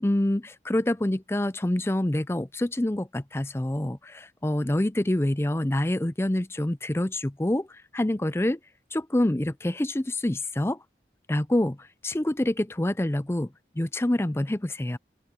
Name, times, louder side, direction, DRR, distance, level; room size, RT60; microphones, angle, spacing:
voice 1, 0.0-8.6 8.9-10.8 11.3-13.5 13.8-15.0, left 1 dB, 15° left, 0.5 m, -26 dB
open air
head